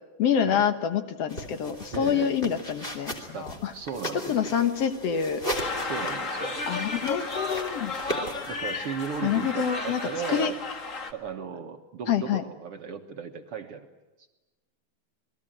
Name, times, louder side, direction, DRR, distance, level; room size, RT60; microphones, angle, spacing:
voice 1, 0.2-3.7 4.3-5.4 6.7-7.9 9.2-10.0 10.3-10.5 12.1-12.4, left 8 dB, 65° left, 9 dB, 1.6 m, -26 dB
sound 1, 1.3-9.5, equal, 15° left, 2.9 m, -38 dB
voice 2, 1.9-2.4 3.3-4.6 5.8-6.6 8.5-10.6 11.1-13.9, right 6 dB, 60° right, 5 dB, 1.5 m, -36 dB
sound 2, 5.5-11.1, left 3 dB, 35° left, 1.3 m, -33 dB
28.5 x 21.5 x 9.0 m, 1.1 s
omnidirectional pair, 4.2 m